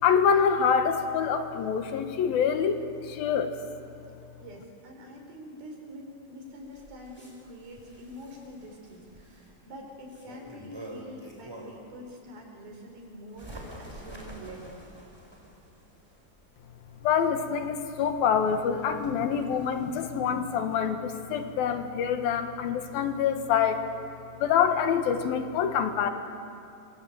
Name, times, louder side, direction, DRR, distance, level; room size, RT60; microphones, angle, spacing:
voice 1, 0.0-3.6 17.0-23.8 24.4-26.1, left 7 dB, 85° left, 7 dB, 3.4 m, -26 dB
voice 2, 4.4-14.7, equal, 85° right, 1 dB, 6.9 m, -45 dB
Bird, 6.5-11.9 12.4-20.1, right 1 dB, 5° right, 4.8 m, -48 dB
27.0 x 24.5 x 9.0 m, 2.7 s
omnidirectional pair, 4.1 m